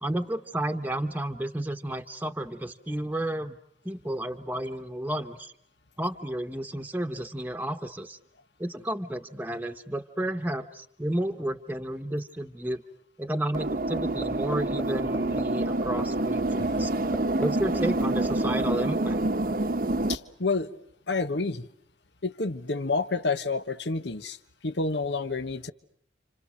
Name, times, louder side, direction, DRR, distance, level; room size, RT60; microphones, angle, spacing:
voice 1, 0.0-3.6 3.8-5.5 6.0-8.2 8.6-12.8 13.2-16.9 17.4-19.2, right 1 dB, 10° right, 6 dB, 1.1 m, -32 dB
sound 1, 13.5-20.2, right 2 dB, 50° right, 1.0 m, -27 dB
sound 2, 14.0-14.3 14.5-14.8 15.1-15.4 15.8-16.0 16.4-16.5 16.8-17.5 17.7-18.7, equal, 10° left, 1.6 m, -36 dB
voice 2, 16.6-16.9 20.1-20.7 21.1-21.7 22.2-24.4 24.6-25.7, left 3 dB, 75° left, 12 dB, 1.3 m, -29 dB
30.0 x 26.5 x 6.4 m, 0.69 s
head